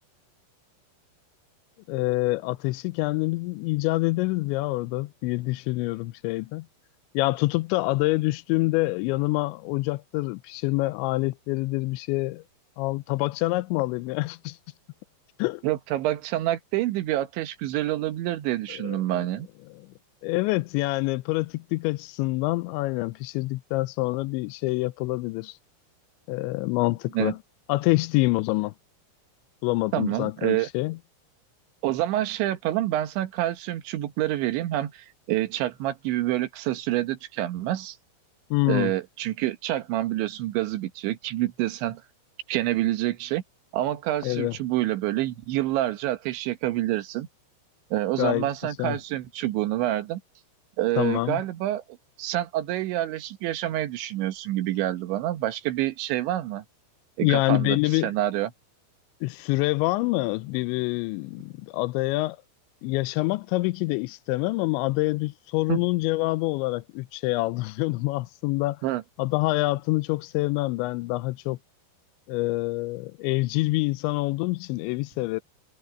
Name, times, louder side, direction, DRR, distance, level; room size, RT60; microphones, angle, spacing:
voice 1, 1.9-6.7 7.1-12.4 12.8-14.6 15.4-15.6 18.8-19.3 19.7-19.8 20.2-25.6 26.3-27.4 27.7-28.7 29.6-31.0 38.5-38.9 44.2-44.5 48.2-48.5 48.8-49.0 51.0-51.4 57.2-58.1 59.2-62.4 62.8-68.8 69.2-71.6 72.3-75.4, left 21 dB, 90° left, 2.9 m, -26 dB
voice 2, 15.6-19.5 27.2-27.3 29.9-30.7 31.8-38.0 38.7-42.0 42.5-43.4 43.7-47.3 47.9-50.2 50.8-51.8 52.2-56.7 57.2-57.8 58.0-58.5 65.7-65.8 68.8-69.0, right 14 dB, 85° right, 3.6 m, -27 dB
omnidirectional pair, 5.1 m